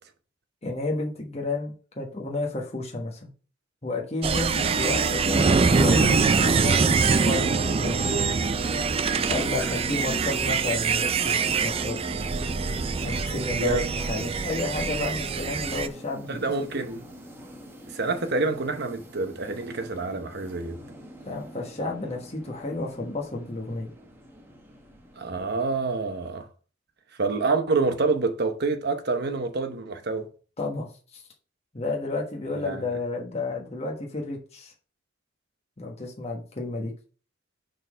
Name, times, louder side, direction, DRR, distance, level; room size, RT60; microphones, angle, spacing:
voice 1, 0.6-3.3 3.8-8.4 9.3-12.0 13.0-16.4 21.2-23.9 30.6-31.2 31.7-34.7 35.8-36.9, left 2 dB, 30° left, 1.2 m, -31 dB
sound 1, 4.2-15.9, right 5 dB, 30° right, 0.4 m, -24 dB
sound 2, 7.8-26.3, equal, 10° right, 1.0 m, -43 dB
voice 2, 13.6-14.0 16.3-17.0 17.9-20.8 25.2-26.5 27.2-30.3 32.6-32.9, right 3 dB, 55° right, 1.0 m, -27 dB
6.7 x 3.9 x 5.0 m
head